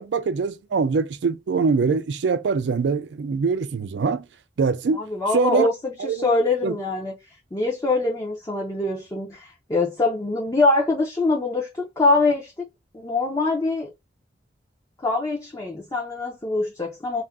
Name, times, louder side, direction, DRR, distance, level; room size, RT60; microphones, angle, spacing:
voice 1, 0.0-4.2 4.6-5.0 5.3-5.7 6.0-6.3 6.6-6.8, right 4 dB, 70° right, 0.4 m, -23 dB
voice 2, 5.1-7.1 7.5-12.7 12.9-13.9 15.0-17.2, left 3 dB, 20° left, 0.5 m, -23 dB
2.4 x 2.1 x 3.4 m
head